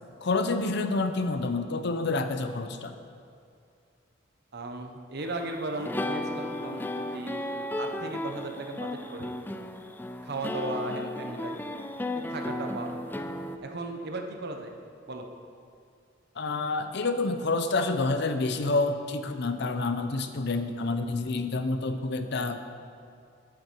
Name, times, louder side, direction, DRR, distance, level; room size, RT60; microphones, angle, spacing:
voice 1, 0.2-3.0 16.4-22.6, left 3 dB, 60° left, 8 dB, 0.6 m, -28 dB
voice 2, 4.5-6.8 7.1-9.3 10.2-11.6 12.1-13.0 13.6-14.7 15.1-15.2, right 2 dB, 55° right, 4 dB, 0.9 m, -36 dB
String Serenade, 5.2-13.6, left 1 dB, 10° left, 0.3 m, -34 dB
9.8 x 8.7 x 4.5 m, 2.3 s
head